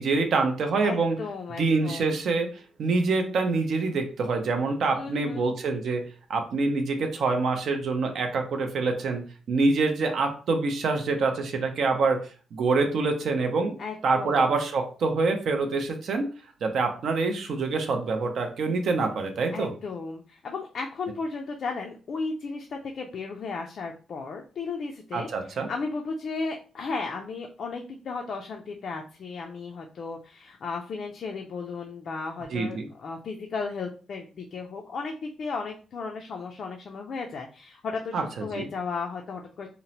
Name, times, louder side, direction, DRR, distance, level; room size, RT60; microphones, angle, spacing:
voice 1, 0.0-1.2 1.6-2.5 2.8-6.0 6.3-13.7 14.0-16.3 16.6-19.7 25.1-25.7 32.5-32.9 38.1-38.7, right 3 dB, 60° right, 5 dB, 0.5 m, -26 dB
voice 2, 0.8-2.2 4.9-5.5 13.8-14.5 19.5-39.7, left 4 dB, 50° left, 2 dB, 0.3 m, -35 dB
2.9 x 2.0 x 2.7 m, 0.38 s
cardioid pair, 140°, 0 cm